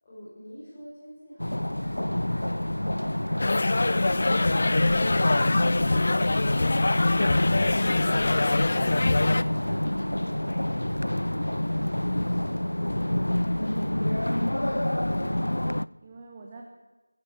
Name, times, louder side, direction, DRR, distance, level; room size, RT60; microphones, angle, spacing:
voice 1, 0.0-13.3, equal, 20° left, -10 dB, 7.1 m, -49 dB
sound 1, 1.4-15.9, left 1 dB, 80° left, 0.6 m, -28 dB
sound 2, 3.4-9.4, left 2 dB, 45° left, 0.8 m, -23 dB
voice 2, 14.9-16.7, right 3 dB, 20° right, 1 dB, 2.1 m, -48 dB
24.5 x 15.5 x 8.6 m, 1.1 s
figure-of-eight pair, 170°, 0 cm